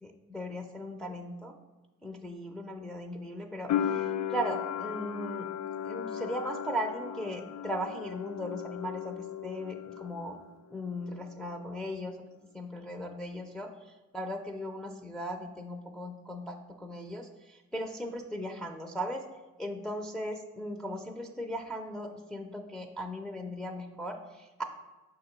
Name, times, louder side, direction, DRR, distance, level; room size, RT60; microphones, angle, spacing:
voice 1, 0.0-1.5 2.0-5.5 5.8-9.1 9.4-10.4 10.7-12.2 12.5-19.2 19.6-24.6, equal, ahead, 1 dB, 0.5 m, -38 dB
sound 1, 3.7-10.5 10.7-11.6, left 9 dB, 65° left, 0.5 m, -36 dB
6.4 x 2.9 x 5.3 m, 1.2 s
cardioid pair, 90°, 30 cm